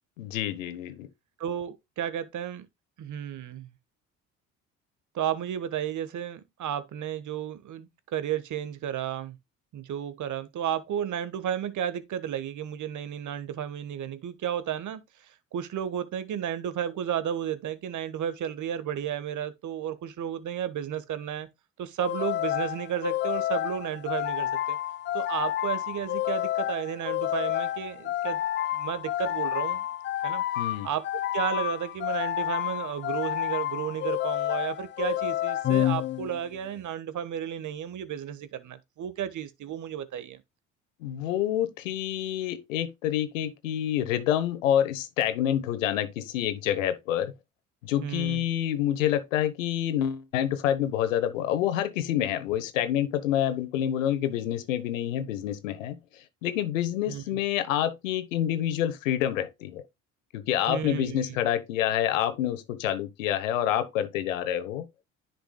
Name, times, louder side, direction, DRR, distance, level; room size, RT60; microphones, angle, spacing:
voice 1, 0.2-1.1 30.6-30.9 41.0-47.3 47.8-56.0 56.4-59.8 60.3-64.8, left 11 dB, 90° left, 1.1 m, -27 dB
voice 2, 1.4-2.7 3.0-3.7 5.1-9.4 9.7-21.5 21.8-24.8 25.1-28.4 28.7-29.8 30.2-30.4 30.8-31.0 31.3-40.4 48.0-48.4 57.1-57.2 60.7-61.4, right 9 dB, 50° right, 1.4 m, -33 dB
sound 1, 22.0-36.6, left 13 dB, 30° left, 0.4 m, -29 dB
10.5 x 6.0 x 2.3 m
hypercardioid pair, 65°, 38 cm